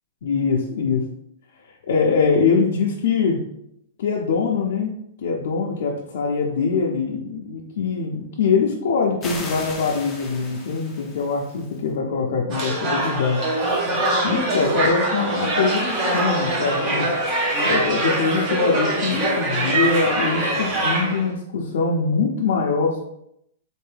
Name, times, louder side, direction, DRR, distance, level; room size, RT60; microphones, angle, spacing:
voice 1, 0.2-1.1 1.7-3.4 4.0-4.9 5.2-13.4 13.9-14.0 14.2-15.9 16.1-17.1 17.6-23.0, left 5 dB, 65° left, -2 dB, 0.6 m, -23 dB
sound 1, 9.2-11.8, left 2 dB, 10° left, 0.6 m, -36 dB
sound 2, 12.5-21.3, right 1 dB, 25° right, 0.8 m, -23 dB
4.4 x 2.6 x 3.3 m, 0.76 s
hypercardioid pair, 165°, 0 cm